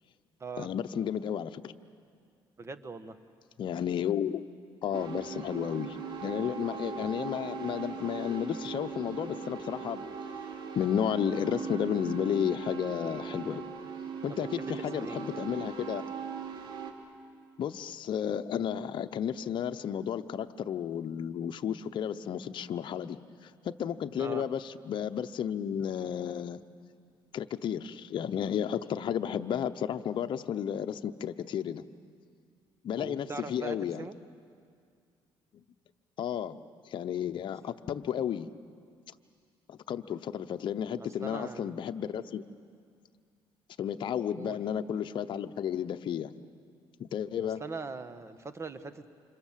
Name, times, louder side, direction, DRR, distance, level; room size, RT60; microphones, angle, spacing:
voice 1, 0.6-1.7 3.6-4.4 4.8-10.0 10.7-13.6 14.2-16.0 17.6-23.2 23.4-26.6 27.3-31.8 32.8-34.0 35.5-35.6 36.2-36.6 36.9-38.5 39.7-42.4 43.8-46.3 47.0-47.6, left 9 dB, 55° left, 8 dB, 0.9 m, -32 dB
voice 2, 2.6-3.2 14.3-15.2 24.2-24.4 33.0-34.2 41.2-41.8 44.4-44.6 47.6-49.1, right 4 dB, 30° right, 10 dB, 1.5 m, -41 dB
sound 1, 4.9-16.9, right 5 dB, 60° right, 2.8 m, -39 dB
29.0 x 26.0 x 7.5 m, 2.2 s
cardioid pair, 90°, 9 cm